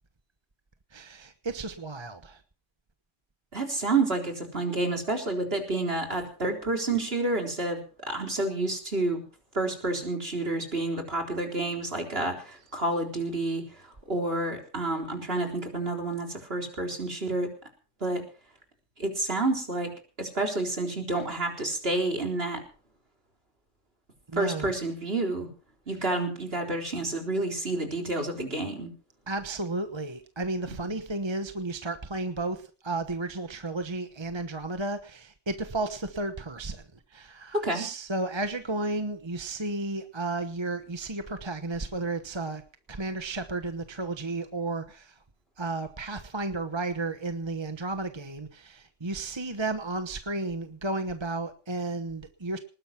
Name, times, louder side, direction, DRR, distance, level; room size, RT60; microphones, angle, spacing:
voice 1, 0.9-2.4 24.3-24.7 29.3-42.6 42.9-45.2 45.6-52.6, right 2 dB, 25° right, 8 dB, 1.1 m, -33 dB
voice 2, 3.5-9.2 9.5-13.6 14.1-17.5 18.0-18.2 19.0-19.9 20.2-22.6 24.3-25.5 25.9-28.9 37.5-37.8, right 2 dB, 50° right, 3 dB, 4.1 m, -29 dB
20.0 x 10.5 x 5.9 m, 0.39 s
omnidirectional pair, 1.3 m